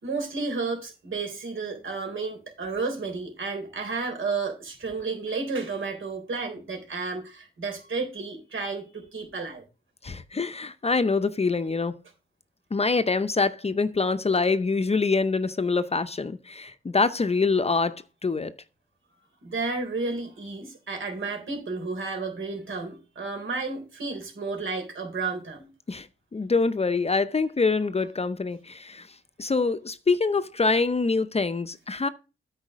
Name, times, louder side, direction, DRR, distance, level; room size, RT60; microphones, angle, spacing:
voice 1, 0.0-9.6 19.4-25.7, right 4 dB, 70° right, 3.5 m, -32 dB
voice 2, 10.0-12.0 12.7-18.5 25.9-26.1 26.3-29.1 29.4-32.1, left 4 dB, 30° left, 0.6 m, -25 dB
8.8 x 4.7 x 6.1 m
cardioid pair, 70°, 21 cm